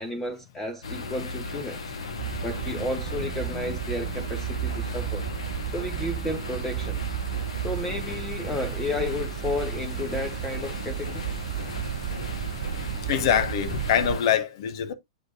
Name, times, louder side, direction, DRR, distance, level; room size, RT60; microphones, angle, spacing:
voice 1, 0.0-1.8 2.4-5.2 5.7-7.0 7.6-11.2, left 2 dB, 10° left, 1.0 m, -32 dB
sound 1, 0.8-14.4, left 4 dB, 65° left, 1.4 m, -37 dB
sound 2, 2.2-14.2, right 11 dB, 50° right, 0.5 m, -33 dB
voice 2, 13.1-14.9, left 9 dB, 50° left, 1.0 m, -24 dB
8.1 x 4.9 x 2.6 m
figure-of-eight pair, 100°, 3 cm